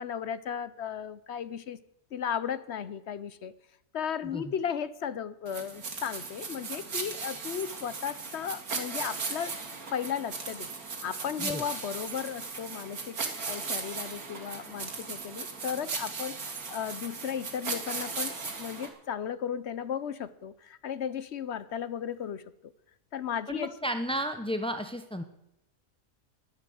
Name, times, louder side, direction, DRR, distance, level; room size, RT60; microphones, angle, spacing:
voice 1, 0.0-1.8 2.1-3.5 3.9-9.5 9.9-10.7 11.0-22.4 23.1-23.7, left 8 dB, 55° left, 15 dB, 0.9 m, -35 dB
sound 1, 5.5-18.9, right 4 dB, 85° right, 2.4 m, -37 dB
voice 2, 23.5-25.2, equal, 10° left, 8 dB, 0.4 m, -33 dB
12.0 x 10.0 x 7.8 m, 0.83 s
omnidirectional pair, 1.5 m